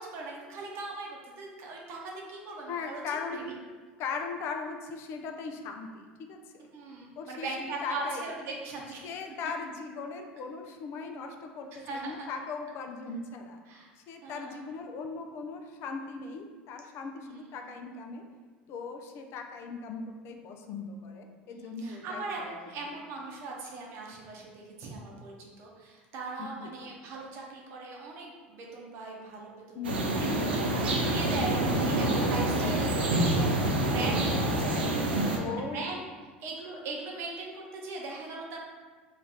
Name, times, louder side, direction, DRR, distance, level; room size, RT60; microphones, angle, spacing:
voice 1, 0.0-3.4 6.7-9.1 11.7-12.1 13.7-13.9 14.2-14.7 17.2-17.5 21.5-32.9 33.2-36.0 36.4-38.6, right 3 dB, 50° right, -1 dB, 0.7 m, -40 dB
voice 2, 2.7-3.5 4.0-6.0 6.3-6.7 7.2-8.3 9.0-13.6 14.1-18.2 18.7-22.7 26.4-26.9 29.7-30.4 35.4-35.9, left 4 dB, 50° left, 4 dB, 0.4 m, -39 dB
sound 1, 29.8-35.4, right 1 dB, 85° right, 0.4 m, -27 dB
2.7 x 2.4 x 3.4 m, 1.4 s
hypercardioid pair, 75°, 5 cm